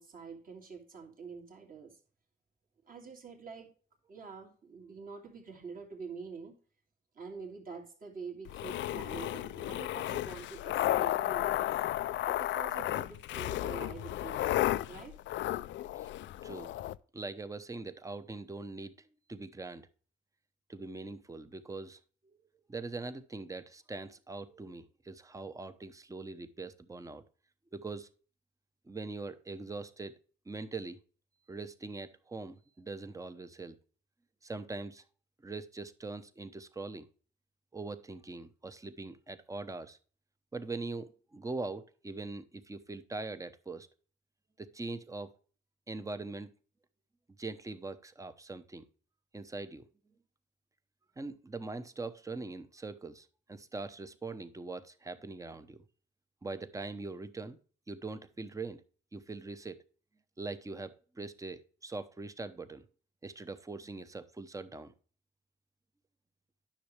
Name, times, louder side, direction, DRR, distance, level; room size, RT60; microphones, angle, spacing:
voice 1, 0.0-2.0 2.9-3.7 4.1-6.6 7.1-11.7 12.3-15.2, right 5 dB, 45° right, 1 dB, 2.8 m, -46 dB
sound 1, 8.5-17.0, left 14 dB, 70° left, 0.4 m, -33 dB
voice 2, 16.4-16.7 17.1-19.8 20.7-22.4 22.7-27.2 27.7-28.1 28.9-30.2 30.5-31.0 31.5-33.8 34.4-35.0 35.4-37.1 37.7-40.0 40.5-43.9 44.6-45.3 45.9-46.5 47.4-48.8 49.3-49.9 51.2-55.8 56.4-57.6 57.9-58.8 59.1-59.8 60.4-62.8 63.2-64.9, right 3 dB, 15° right, 12 dB, 0.9 m, -42 dB
10.0 x 6.5 x 3.3 m, 0.39 s
cardioid pair, 90°, 20 cm